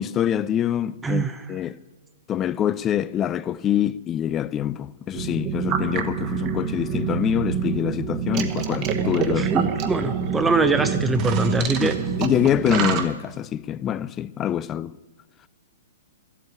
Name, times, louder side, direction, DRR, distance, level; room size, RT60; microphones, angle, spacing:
voice 1, 0.0-1.8 2.3-9.5 11.8-11.9 12.2-14.9, left 10 dB, 25° left, 0.4 m, -25 dB
voice 2, 1.0-1.4 9.4-11.9, right 3 dB, 10° right, 0.7 m, -23 dB
sound 1, 5.1-13.0, right 7 dB, 35° right, 1.3 m, -26 dB
13.0 x 8.2 x 9.5 m
hypercardioid pair, 125°, 0 cm